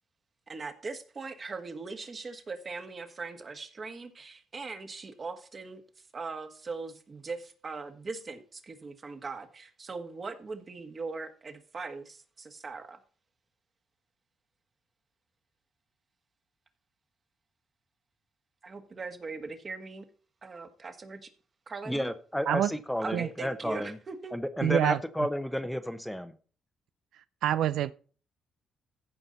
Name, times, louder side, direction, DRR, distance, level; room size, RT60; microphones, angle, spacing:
voice 1, 0.5-5.8 6.1-13.0 18.6-20.1 20.4-21.3 21.7-22.1 23.0-24.4, right 4 dB, 35° right, 1.7 m, -40 dB
voice 2, 21.9-24.0 24.3-26.3, equal, 5° left, 0.9 m, -32 dB
voice 3, 24.6-25.0 27.4-27.9, right 11 dB, 80° right, 0.4 m, -26 dB
15.0 x 5.3 x 4.1 m
cardioid pair, 90°, 0 cm